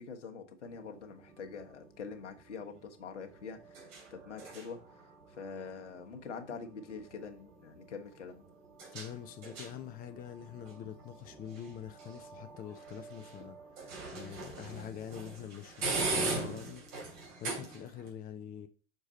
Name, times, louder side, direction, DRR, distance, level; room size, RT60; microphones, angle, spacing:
voice 1, 0.0-8.5, left 5 dB, 75° left, 1.3 m, -45 dB
sound 1, 0.6-18.1, right 3 dB, 50° right, 3.2 m, -42 dB
voice 2, 8.9-13.6 14.1-16.9 17.4-18.7, left 9 dB, 25° left, 0.7 m, -45 dB
6.7 x 4.7 x 4.3 m
figure-of-eight pair, 90°, 36 cm